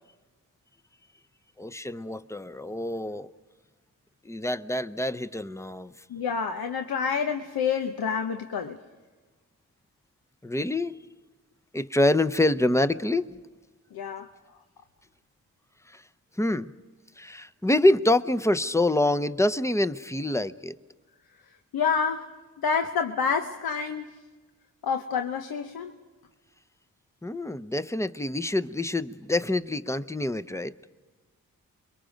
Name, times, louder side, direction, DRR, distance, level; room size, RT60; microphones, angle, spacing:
voice 1, 1.6-3.3 4.2-5.9 10.4-11.1 11.7-13.5 15.9-16.0 16.4-16.7 17.2-20.7 27.2-30.7, left 1 dB, 10° left, 12 dB, 0.7 m, -26 dB
voice 2, 6.1-8.8 13.9-14.3 21.7-22.3 22.6-24.1 24.8-25.9, left 6 dB, 75° left, 6 dB, 0.9 m, -28 dB
29.0 x 22.5 x 5.2 m, 1.3 s
supercardioid pair, 40°, 37 cm